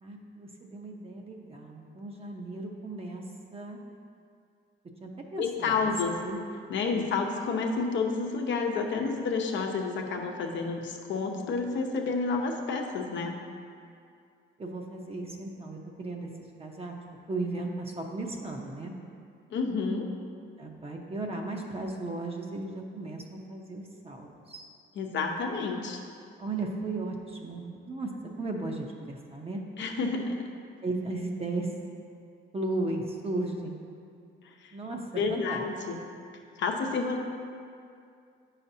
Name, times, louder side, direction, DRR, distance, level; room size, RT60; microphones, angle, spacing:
voice 1, 0.0-3.8 5.0-6.4 6.9-7.0 14.6-16.3 16.6-16.9 17.3-18.9 20.6-24.7 26.4-28.1 28.4-29.6 30.8-31.8 32.5-33.8 34.7-35.6, right 2 dB, 30° right, 0 dB, 0.7 m, -36 dB
voice 2, 5.4-6.2 6.7-13.4 19.5-20.1 24.9-26.0 29.8-30.5 34.6-34.7 35.1-36.0 36.6-37.2, left 4 dB, 70° left, 2 dB, 0.8 m, -30 dB
9.2 x 5.7 x 2.7 m, 2.3 s
cardioid pair, 90°, 20 cm